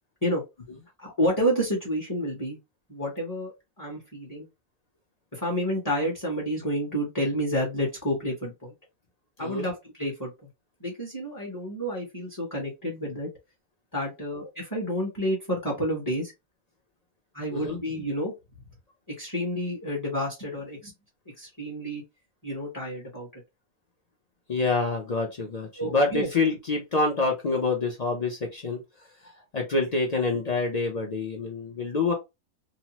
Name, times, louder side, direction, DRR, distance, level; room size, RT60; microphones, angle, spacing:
voice 1, 1.0-2.6 2.9-3.5 3.8-4.5 5.3-8.7 9.4-10.3 10.8-13.3 13.9-16.3 17.3-18.3 19.2-20.9 21.4-22.0 22.4-23.4 25.8-26.3 30.3-30.4, equal, 15° left, -4 dB, 1.0 m, -29 dB
voice 2, 24.5-28.8 29.5-32.1, left 3 dB, 55° left, 1 dB, 0.4 m, -26 dB
2.8 x 2.0 x 3.0 m, 0.22 s
omnidirectional pair, 1.5 m